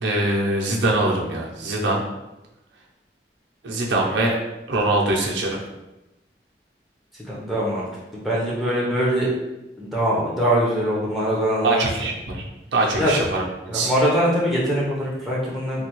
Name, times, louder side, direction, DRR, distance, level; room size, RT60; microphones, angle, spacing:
voice 1, 0.0-2.0 3.6-4.3 4.7-5.6 11.6-12.4 12.7-13.9, right 2 dB, 90° right, -1 dB, 0.6 m, -23 dB
voice 2, 7.1-9.3 9.8-11.8 13.0-13.1 13.7-15.9, equal, ahead, -7 dB, 0.7 m, -23 dB
3.3 x 2.3 x 2.9 m, 0.98 s
head